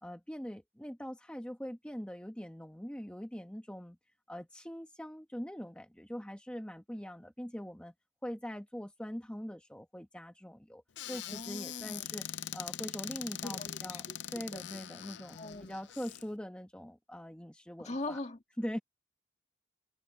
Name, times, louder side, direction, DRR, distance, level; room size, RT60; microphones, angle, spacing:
voice 1, 0.0-4.0 4.3-7.9 8.2-12.3 12.5-14.1 14.3-18.2 18.6-18.8, equal, 5° left, 1.0 m, -42 dB
Squeak / Cupboard open or close, 11.0-16.2, left 11 dB, 65° left, 0.5 m, -42 dB
voice 2, 11.0-12.1 13.4-14.8 15.4-15.8 17.8-18.4, left 2 dB, 35° left, 2.1 m, -42 dB
head